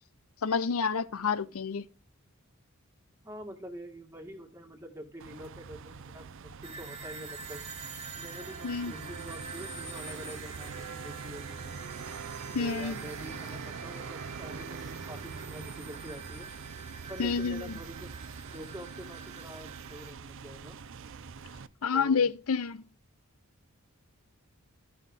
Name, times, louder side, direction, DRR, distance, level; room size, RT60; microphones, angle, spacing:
voice 1, 0.4-1.9 8.6-8.9 12.5-13.0 17.2-17.7 21.8-22.8, left 5 dB, 75° left, 0.7 m, -29 dB
voice 2, 3.2-7.6 8.2-11.8 12.6-16.5 17.1-18.1 18.5-20.8 21.9-22.3, equal, 10° right, 1.8 m, -46 dB
sound 1, 5.2-21.7, right 5 dB, 60° right, 0.5 m, -43 dB
sound 2, 6.6-20.1, right 4 dB, 30° right, 1.4 m, -46 dB
14.5 x 5.6 x 3.6 m
head